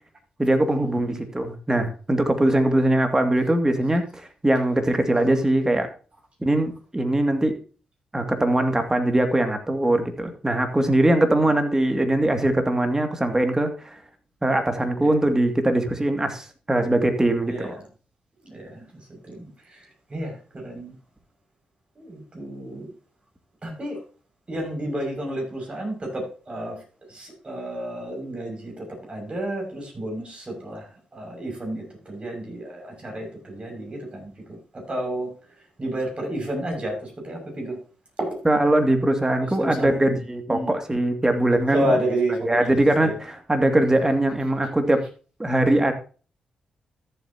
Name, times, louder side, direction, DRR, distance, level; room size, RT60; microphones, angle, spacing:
voice 1, 0.4-5.9 6.4-7.6 8.1-14.0 14.4-17.7 38.4-41.9 42.3-45.0 45.4-45.9, right 1 dB, 20° right, 6 dB, 2.4 m, -21 dB
voice 2, 18.5-18.8 19.3-19.5 20.1-20.9 22.0-22.9 23.6-24.0 24.5-26.8 27.1-30.8 31.1-34.6 34.9-35.3 35.8-37.8 38.2-38.4 39.6-40.1 40.5-40.7 41.7-42.7 43.0-43.1, right 1 dB, 35° right, 0 dB, 6.4 m, -30 dB
14.0 x 7.9 x 2.9 m, 0.37 s
hypercardioid pair, 40°, 3 cm